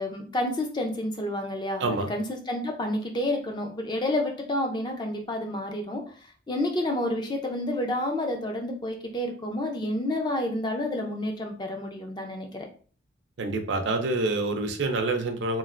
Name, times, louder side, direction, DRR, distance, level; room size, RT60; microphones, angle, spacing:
voice 1, 0.0-1.8 2.1-6.0 6.5-12.7, left 1 dB, 20° left, 3 dB, 0.4 m, -29 dB
voice 2, 1.8-2.1 13.4-15.6, right 2 dB, 65° right, 6 dB, 0.4 m, -27 dB
3.1 x 2.4 x 2.4 m, 0.41 s
head